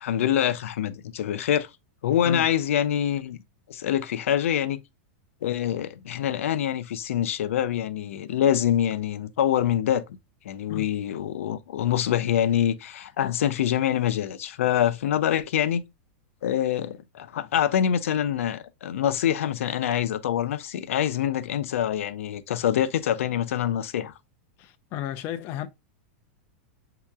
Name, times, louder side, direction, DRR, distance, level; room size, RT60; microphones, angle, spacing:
voice 1, 0.0-1.7 2.0-3.4 3.7-4.8 5.4-10.0 10.4-15.8 16.4-24.1, left 10 dB, 85° left, 0.6 m, -25 dB
voice 2, 24.6-25.7, left 12 dB, 30° left, 0.5 m, -33 dB
7.3 x 2.9 x 2.3 m
supercardioid pair, 165°, 7 cm